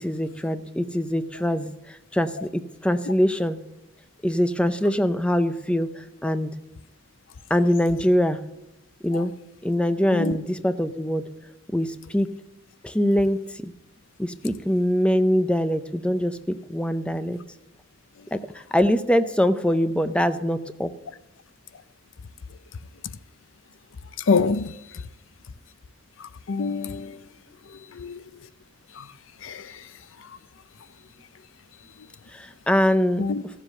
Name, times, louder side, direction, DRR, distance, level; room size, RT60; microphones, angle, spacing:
voice 1, 0.0-3.6 4.2-6.5 7.5-8.4 9.0-9.3 9.6-11.3 11.7-12.3 12.8-13.7 14.2-17.4 18.3-18.4 18.7-20.9 32.3-33.2, equal, 5° left, 0.5 m, -23 dB
voice 2, 24.3-24.7 26.5-27.2 28.0-28.2 29.4-29.6 33.2-33.4, left 4 dB, 75° left, 0.5 m, -24 dB
15.5 x 7.4 x 6.5 m
head